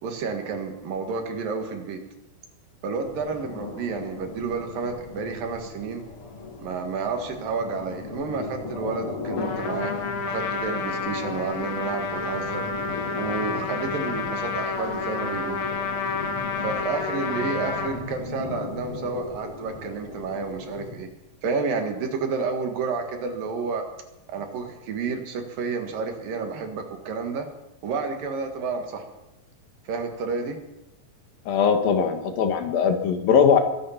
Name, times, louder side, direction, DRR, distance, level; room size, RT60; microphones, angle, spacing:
voice 1, 0.0-2.0 2.8-6.0 6.6-9.9 10.2-12.6 13.2-15.6 16.6-21.1 21.4-23.8 24.3-27.5 27.8-29.0 29.9-30.6, right 4 dB, 70° right, 5 dB, 3.4 m, -30 dB
sound 1, 3.0-21.0, left 4 dB, 40° left, 2.7 m, -37 dB
Trumpet, 9.4-17.9, left 4 dB, 55° left, 2.7 m, -30 dB
voice 2, 31.5-33.6, left 6 dB, 75° left, 6 dB, 3.2 m, -20 dB
23.0 x 9.9 x 5.9 m, 0.90 s
omnidirectional pair, 4.3 m